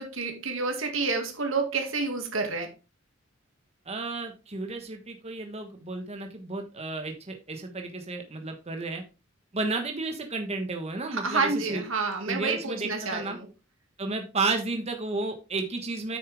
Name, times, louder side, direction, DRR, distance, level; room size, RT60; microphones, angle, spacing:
voice 1, 0.0-2.7 11.1-13.5, right 4 dB, 90° right, 4 dB, 2.2 m, -29 dB
voice 2, 3.8-9.0 9.5-11.8 12.3-13.4 14.0-16.2, right 3 dB, 30° right, 4 dB, 1.3 m, -32 dB
8.7 x 6.7 x 3.5 m, 0.29 s
head